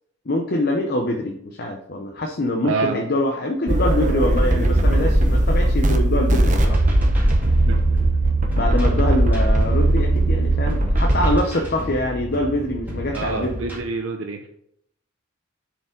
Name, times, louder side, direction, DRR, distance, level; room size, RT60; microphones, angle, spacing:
voice 1, 0.3-6.8 8.5-13.6, left 1 dB, 50° left, 3 dB, 0.7 m, -24 dB
voice 2, 2.6-3.0 7.7-8.0 13.1-14.5, right 4 dB, 75° right, 4 dB, 0.7 m, -27 dB
sound 1, 3.7-11.3, right 1 dB, 35° right, 0.9 m, -18 dB
sound 2, 6.6-13.8, equal, 10° right, 2.0 m, -32 dB
7.1 x 4.9 x 5.1 m, 0.72 s
head